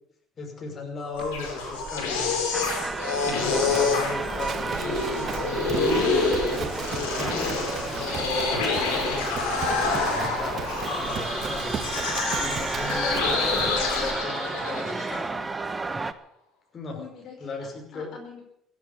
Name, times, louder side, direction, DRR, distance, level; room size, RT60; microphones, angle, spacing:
voice 1, 0.4-2.5 3.2-10.6 11.0-11.8 12.4-15.5 16.7-17.0 17.4-18.1, left 3 dB, 40° left, 1 dB, 5.8 m, -37 dB
sound 1, 1.0-15.2, left 4 dB, 90° left, 5.3 m, -27 dB
Livestock farm animals working animals, 1.1-14.2, right 6 dB, 50° right, 2.0 m, -36 dB
sound 2, 2.5-16.1, right 3 dB, 25° right, 1.2 m, -33 dB
voice 2, 13.1-13.8 16.9-18.4, left 6 dB, 60° left, 0 dB, 5.1 m, -44 dB
16.5 x 10.0 x 8.5 m, 0.76 s
supercardioid pair, 75°, 0 cm